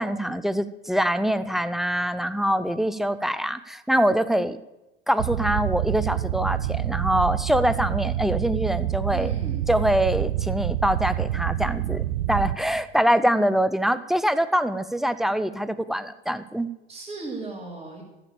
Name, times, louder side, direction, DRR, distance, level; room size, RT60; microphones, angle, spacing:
voice 1, 0.0-4.6 5.1-9.3 9.7-16.7, equal, ahead, 14 dB, 0.6 m, -24 dB
sound 1, 5.2-12.5, right 13 dB, 70° right, 0.7 m, -27 dB
voice 2, 9.1-9.6 16.9-18.0, right 3 dB, 15° right, -7 dB, 4.0 m, -36 dB
14.5 x 7.1 x 6.8 m, 0.96 s
figure-of-eight pair, 65°, 30 cm